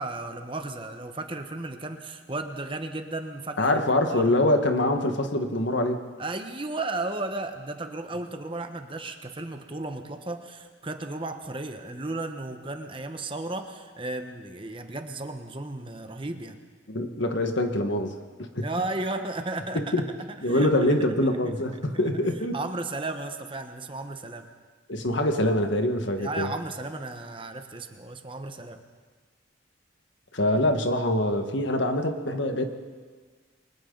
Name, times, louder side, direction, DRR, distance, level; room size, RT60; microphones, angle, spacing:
voice 1, 0.0-3.7 4.1-4.3 6.2-16.6 18.6-20.2 20.4-21.0 21.4-21.5 22.5-24.5 26.2-28.8, right 2 dB, 25° right, 6 dB, 1.1 m, -34 dB
voice 2, 3.6-6.0 16.9-18.7 19.7-20.0 20.4-22.5 24.9-26.5 30.3-32.7, left 1 dB, 70° left, 5 dB, 1.7 m, -24 dB
29.0 x 23.5 x 4.0 m, 1.5 s
head